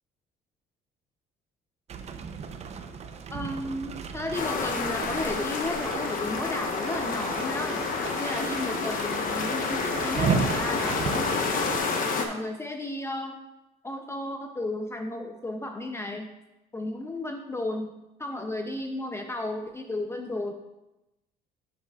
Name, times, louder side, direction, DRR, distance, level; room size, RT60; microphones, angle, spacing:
sound 1, 1.9-11.8, right 5 dB, 40° right, 0.6 m, -34 dB
voice 1, 3.3-7.8 8.2-11.3 12.2-13.4 13.8-16.3 16.7-17.9 18.2-20.5, left 1 dB, 15° left, 4 dB, 0.5 m, -33 dB
sound 2, 4.3-12.3, left 4 dB, 55° left, 0.9 m, -29 dB
8.0 x 7.7 x 2.4 m, 0.95 s
cardioid pair, 110°, 17 cm